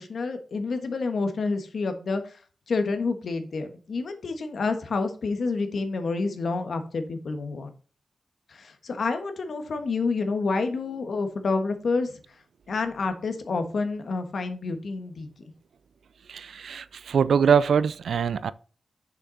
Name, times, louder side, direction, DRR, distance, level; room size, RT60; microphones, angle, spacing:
voice 1, 0.0-2.4 2.7-7.7 8.5-12.1 12.7-15.3, left 4 dB, 65° left, 1.3 m, -28 dB
voice 2, 16.3-18.5, right 7 dB, 80° right, 0.4 m, -23 dB
6.7 x 6.0 x 4.0 m
wide cardioid pair, 115°, 0 cm